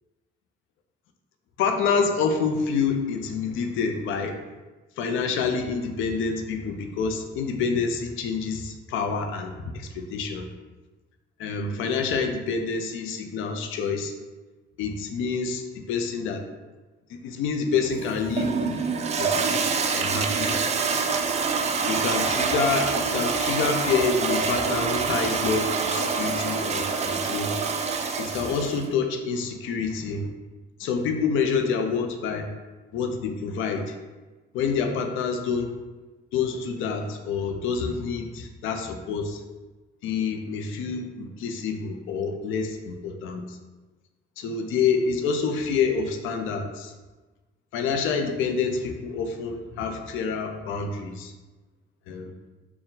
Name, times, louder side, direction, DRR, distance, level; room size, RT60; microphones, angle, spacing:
voice 1, 1.6-4.4 5.0-10.5 11.4-14.1 14.8-15.6 15.9-16.4 17.1-18.8 19.2-19.4 19.9-20.6 21.9-27.6 28.2-30.3 30.8-32.5 32.9-33.9 34.5-35.7 36.3-39.4 40.0-43.6 44.4-46.9 47.7-51.3 52.1-52.3, left 5 dB, 90° left, 5 dB, 0.5 m, -27 dB
Toilet flush, 17.8-28.9, right 5 dB, 35° right, 0.4 m, -26 dB
4.2 x 2.2 x 3.8 m, 1.2 s
cardioid pair, 90°, 20 cm